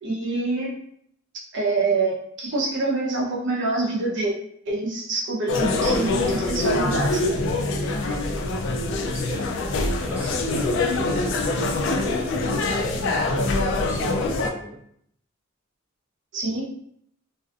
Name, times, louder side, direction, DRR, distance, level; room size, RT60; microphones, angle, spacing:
voice 1, 0.0-0.7 1.5-4.3 4.7-7.3 16.3-16.6, right 3 dB, 60° right, -4 dB, 0.7 m, -26 dB
sound 1, 5.5-14.5, left 2 dB, 60° left, 0.3 m, -24 dB
voice 2, 8.8-11.4 11.8-14.8 16.4-16.6, equal, 10° right, -7 dB, 0.5 m, -38 dB
2.5 x 2.3 x 2.3 m, 0.69 s
head